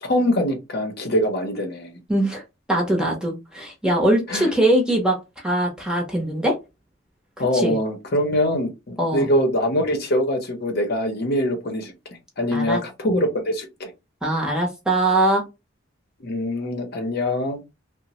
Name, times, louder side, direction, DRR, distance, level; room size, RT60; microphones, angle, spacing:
voice 1, 0.0-1.9 4.3-4.5 7.4-11.9 12.4-13.9 16.2-17.6, left 1 dB, 55° left, 0.7 m, -23 dB
voice 2, 2.1-2.4 2.7-6.6 7.4-7.8 9.0-9.3 12.5-12.8 14.2-15.4, right 1 dB, 5° right, 0.7 m, -22 dB
2.9 x 2.0 x 2.9 m
head